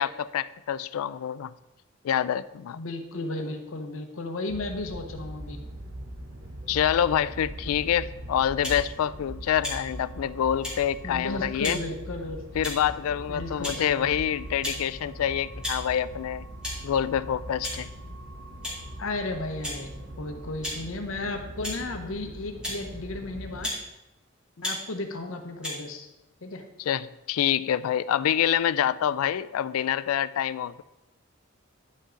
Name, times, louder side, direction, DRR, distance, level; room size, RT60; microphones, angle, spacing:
voice 1, 0.0-1.5 2.0-2.8 6.7-11.8 12.5-16.5 16.8-17.9 26.8-30.8, left 9 dB, 90° left, 17 dB, 0.3 m, -26 dB
voice 2, 2.7-5.6 11.0-12.4 13.3-14.1 19.0-19.9 20.2-23.7 24.6-26.1 26.4-26.6, left 2 dB, 70° left, 5 dB, 0.8 m, -34 dB
sound 1, 4.5-23.7, right 1 dB, 70° right, 1.1 m, -41 dB
sound 2, 8.6-8.8 9.6-9.8 10.6-10.8 11.6-11.8 12.6-12.9 13.6-13.8 14.6-14.8 15.6-15.8 16.6-16.7 17.6-17.8 18.6-18.8 19.6-19.8 20.6-20.8 21.6-21.8 22.6-22.8 23.6-23.8 24.6-24.8 25.6-25.7, left 1 dB, 5° right, 2.1 m, -32 dB
9.8 x 5.4 x 3.8 m, 0.97 s
head